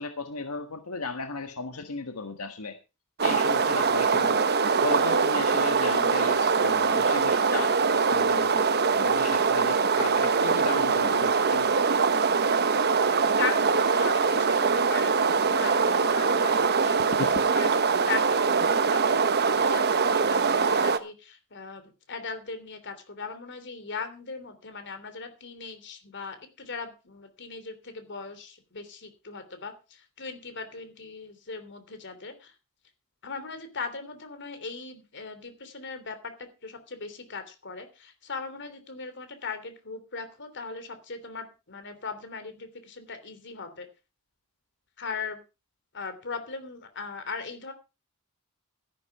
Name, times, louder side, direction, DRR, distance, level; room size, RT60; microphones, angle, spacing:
voice 1, 0.0-2.8 3.2-4.4 4.8-11.9 17.2-17.3, left 3 dB, 90° left, 7 dB, 1.5 m, -35 dB
sound 1, 3.2-21.0, right 5 dB, 50° right, 1.1 m, -23 dB
voice 2, 13.4-21.8 22.1-32.5 33.2-43.9 45.0-45.4 45.9-47.7, left 4 dB, 55° left, 10 dB, 3.1 m, -38 dB
13.5 x 11.5 x 4.7 m, 0.30 s
head